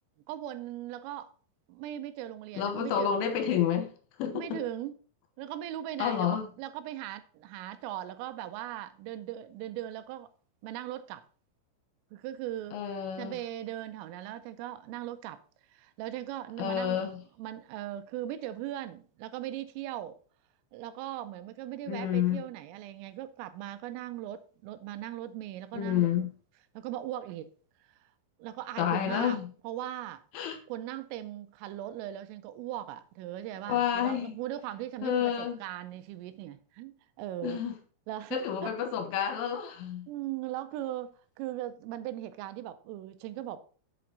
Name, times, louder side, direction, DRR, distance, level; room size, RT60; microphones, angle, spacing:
voice 1, 0.3-1.3 1.7-3.2 4.3-4.9 5.4-10.3 10.6-11.2 12.1-12.8 13.2-15.4 15.7-17.0 17.4-20.2 20.7-26.3 26.8-27.5 27.8-28.1 28.4-30.2 30.7-37.6 38.1-38.7 40.1-43.6, right 13 dB, 85° right, 3.2 m, -39 dB
voice 2, 2.6-3.9 4.2-4.6 6.0-6.5 12.7-13.3 16.6-17.2 21.9-22.4 25.7-26.3 28.8-29.5 30.3-30.6 33.7-34.3 35.0-35.6 37.4-37.7 38.3-40.1, left 9 dB, 75° left, 3.4 m, -29 dB
7.8 x 7.6 x 3.9 m
omnidirectional pair, 5.8 m